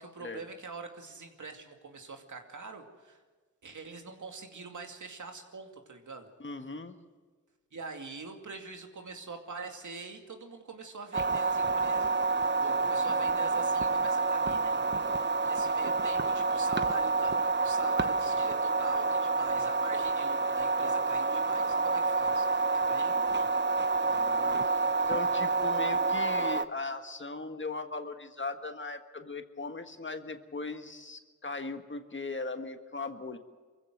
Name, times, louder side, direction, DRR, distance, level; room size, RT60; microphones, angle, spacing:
voice 1, 0.0-3.2 3.6-6.3 7.7-14.8 15.4-22.5 22.9-23.5, right 4 dB, 70° right, 3 dB, 2.5 m, -44 dB
voice 2, 6.4-6.9 24.1-33.4, left 3 dB, 40° left, 7 dB, 1.6 m, -38 dB
sound 1, 11.1-26.6, right 3 dB, 35° right, 0.8 m, -28 dB
23.5 x 15.5 x 7.8 m, 1.4 s
cardioid pair, 55°, 31 cm